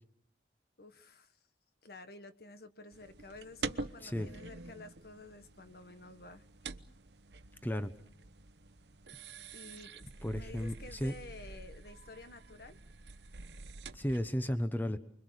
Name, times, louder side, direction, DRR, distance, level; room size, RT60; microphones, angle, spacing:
voice 1, 0.8-1.4 1.8-6.4 9.5-10.0 10.3-12.8, left 2 dB, 60° left, 10 dB, 1.5 m, -51 dB
sound 1, 2.9-14.4, right 3 dB, 75° right, 1.0 m, -47 dB
voice 2, 10.2-11.2 13.9-15.0, equal, 10° left, 10 dB, 1.0 m, -34 dB
29.0 x 23.0 x 6.6 m, 0.65 s
head